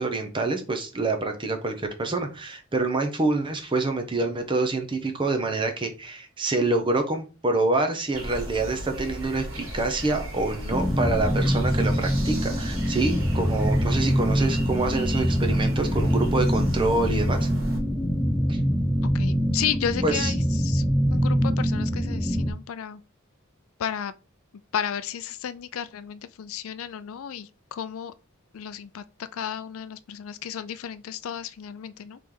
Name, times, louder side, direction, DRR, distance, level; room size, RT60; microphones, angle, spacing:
voice 1, 0.0-17.5 18.5-18.6 20.0-20.3, right 2 dB, 25° right, 0.7 m, -26 dB
sound 1, 8.1-17.8, equal, 70° right, 1.6 m, -34 dB
sound 2, 10.7-22.5, equal, 5° left, 0.3 m, -24 dB
voice 2, 19.1-20.8 21.1-23.0 23.8-24.1 24.7-28.1 28.5-29.0 29.3-32.2, left 8 dB, 80° left, 0.4 m, -33 dB
4.2 x 3.3 x 3.7 m
head